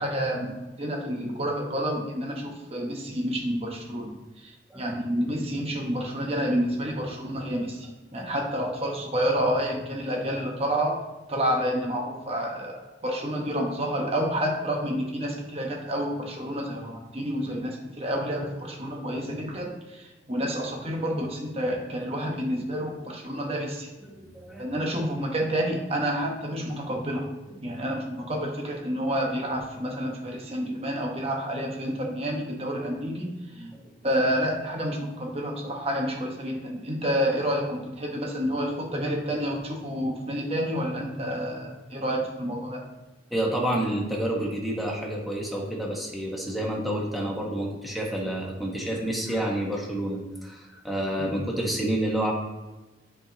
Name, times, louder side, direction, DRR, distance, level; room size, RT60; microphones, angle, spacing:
voice 1, 0.0-4.1 4.4-4.5 4.7-11.0 11.3-23.9 24.6-27.3 27.6-33.3 33.6-33.7 34.0-42.8 51.2-51.3, equal, 35° right, 0 dB, 1.2 m, -29 dB
voice 2, 24.0-24.7 27.5-27.6 30.5-30.6 33.5-33.9 43.3-52.3, right 1 dB, ahead, -3 dB, 1.2 m, -29 dB
8.7 x 4.6 x 2.8 m, 1.1 s
head